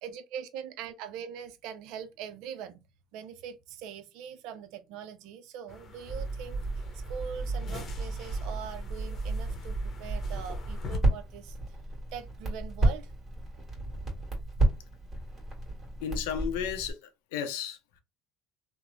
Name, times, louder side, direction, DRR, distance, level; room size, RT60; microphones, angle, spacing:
voice 1, 0.0-2.8 3.1-6.7 6.9-13.1, right 8 dB, 75° right, 0.4 m, -42 dB
sound 1, 5.7-11.0, left 4 dB, 45° left, 0.8 m, -44 dB
Crackle, 6.0-16.9, right 2 dB, 35° right, 1.5 m, -32 dB
voice 2, 16.0-17.8, left 8 dB, 90° left, 0.5 m, -33 dB
2.9 x 2.0 x 2.6 m
supercardioid pair, 90°, 0 cm